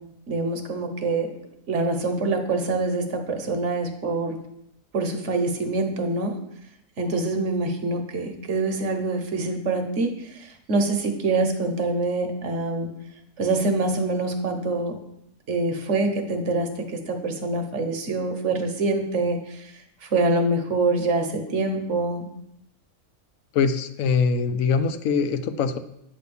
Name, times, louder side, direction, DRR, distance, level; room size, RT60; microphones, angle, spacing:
voice 1, 0.3-1.3 1.7-4.4 4.9-6.3 7.0-12.9 13.4-15.0 15.5-19.7 20.0-22.3, right 2 dB, 55° right, 4 dB, 1.2 m, -25 dB
voice 2, 23.5-25.8, left 5 dB, 70° left, 10 dB, 1.0 m, -23 dB
9.3 x 3.3 x 6.8 m, 0.78 s
omnidirectional pair, 1.5 m